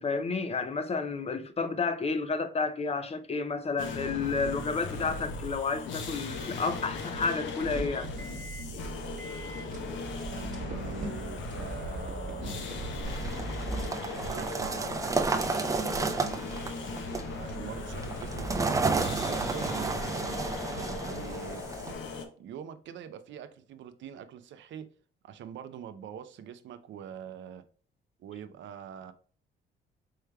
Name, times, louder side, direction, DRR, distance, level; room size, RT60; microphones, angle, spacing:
voice 1, 0.0-8.1, left 4 dB, 30° left, 0.5 m, -31 dB
sound 1, 3.8-22.2, left 3 dB, 70° left, 0.8 m, -38 dB
sound 2, 7.6-13.9, right 3 dB, 40° right, 1.0 m, -39 dB
voice 2, 10.3-12.7 14.2-16.5 17.3-20.3 20.9-21.6 22.4-24.9 25.2-27.6 28.2-29.1, right 8 dB, 70° right, 0.5 m, -44 dB
sound 3, 13.0-21.9, right 3 dB, 15° right, 0.5 m, -32 dB
4.6 x 3.2 x 2.2 m
cardioid pair, 90°, 20 cm